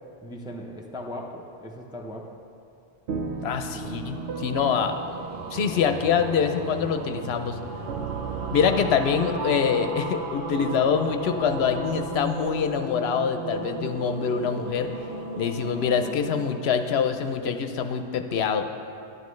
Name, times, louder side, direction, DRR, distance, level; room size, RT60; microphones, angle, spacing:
voice 1, 0.2-2.3, left 1 dB, 5° right, 0 dB, 0.4 m, -38 dB
sound 1, 3.1-12.7, right 5 dB, 85° right, 0.9 m, -37 dB
sound 2, 3.3-17.7, right 2 dB, 55° right, 1.1 m, -36 dB
voice 2, 3.4-4.9 5.5-7.6 8.5-14.9 15.4-18.7, left 7 dB, 75° left, 7 dB, 0.8 m, -25 dB
11.0 x 10.5 x 3.1 m, 2.6 s
omnidirectional pair, 1.1 m